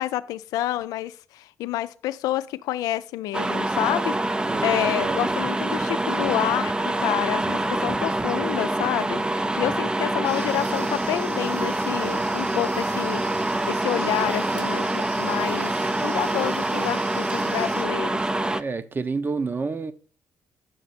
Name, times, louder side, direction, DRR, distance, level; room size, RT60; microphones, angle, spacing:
voice 1, 0.0-6.7 7.0-18.3, left 14 dB, 85° left, 0.4 m, -29 dB
sound 1, 3.3-18.6, right 2 dB, 15° right, 0.5 m, -25 dB
voice 2, 4.5-5.3 18.5-19.9, right 4 dB, 35° right, 0.9 m, -29 dB
sound 2, 10.2-17.8, right 3 dB, 85° right, 3.7 m, -42 dB
9.3 x 6.1 x 4.2 m
supercardioid pair, 65°, 6 cm